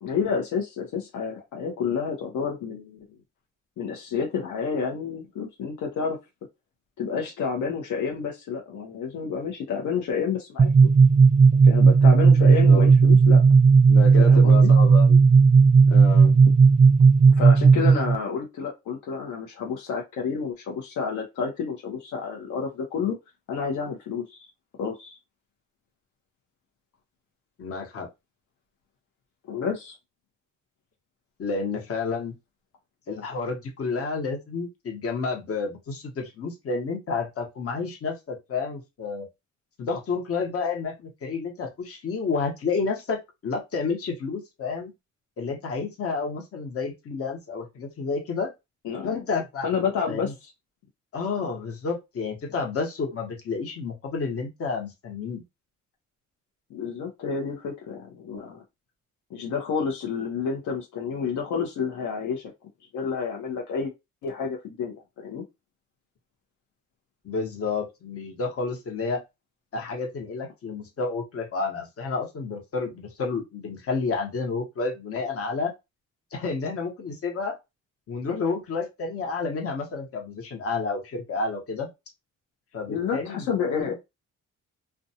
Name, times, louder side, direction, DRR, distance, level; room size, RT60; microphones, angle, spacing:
voice 1, 0.0-3.0 3.8-6.2 7.0-10.9 11.6-13.4 14.2-14.7 17.3-23.1 23.5-24.5 24.8-25.2 29.5-29.9 48.8-49.2 49.6-50.3 56.7-58.6 59.3-62.5 62.9-63.9 64.2-65.4 82.9-83.9, left 6 dB, 75° left, 0.8 m, -29 dB
sound 1, 10.6-18.1, right 5 dB, 25° right, 0.4 m, -15 dB
voice 2, 12.4-12.9 13.9-15.2 15.9-16.4 27.6-28.1 31.4-32.3 33.1-39.3 39.8-44.9 45.4-48.5 49.0-49.7 50.1-50.3 51.1-55.4 67.2-69.2 69.7-75.7 76.3-77.5 78.1-81.9 82.7-83.4 83.7-83.9, left 4 dB, 50° left, 1.0 m, -30 dB
2.5 x 2.2 x 2.7 m
cardioid pair, 90°, 30 cm